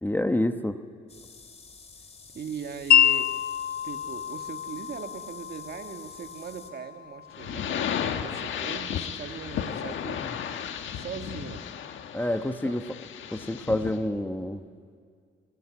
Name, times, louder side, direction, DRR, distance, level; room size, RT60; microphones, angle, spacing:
voice 1, 0.0-0.8 12.1-12.8 13.3-14.6, left 1 dB, 10° left, 8 dB, 1.1 m, -27 dB
sound 1, 1.1-6.7, left 4 dB, 35° left, 3.3 m, -50 dB
voice 2, 2.3-3.3 3.8-10.3 10.9-11.7 12.4-12.8, right 7 dB, 55° right, 6 dB, 1.8 m, -40 dB
Wind chime, 2.9-9.0, left 9 dB, 50° left, 0.6 m, -28 dB
sound 2, 7.3-14.0, left 8 dB, 75° left, 1.5 m, -34 dB
27.0 x 20.0 x 9.8 m, 2.1 s
cardioid pair, 90°, 20 cm